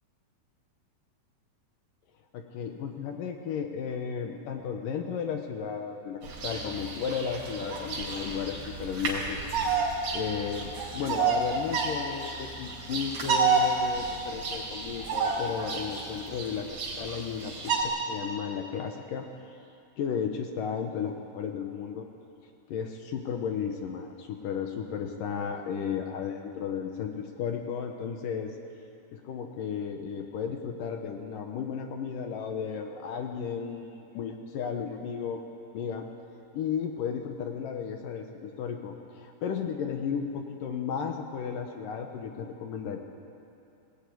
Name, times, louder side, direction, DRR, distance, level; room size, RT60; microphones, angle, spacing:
voice 1, 2.3-16.7 17.0-19.6 20.0-22.1 22.7-28.6 29.1-35.4 35.7-36.1 36.5-43.0, left 7 dB, 70° left, 4 dB, 2.4 m, -34 dB
Bird vocalization bird call bird song, 6.2-17.8, right 4 dB, 50° right, 4.8 m, -30 dB
20.0 x 17.5 x 9.6 m, 2.7 s
omnidirectional pair, 4.8 m